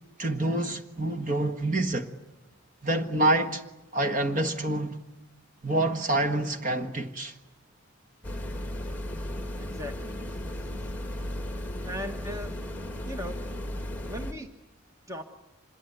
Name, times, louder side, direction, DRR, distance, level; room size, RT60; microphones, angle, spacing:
voice 1, 0.2-2.1 2.8-3.6 3.9-5.0 5.6-7.3, right 1 dB, 35° right, 1.5 m, -27 dB
sound 1, 8.2-14.3, left 1 dB, 10° left, 1.6 m, -35 dB
voice 2, 9.6-10.4 11.8-12.5 13.0-13.4 14.1-14.5 15.1-15.2, equal, 15° right, 1.2 m, -38 dB
26.0 x 22.0 x 9.3 m
head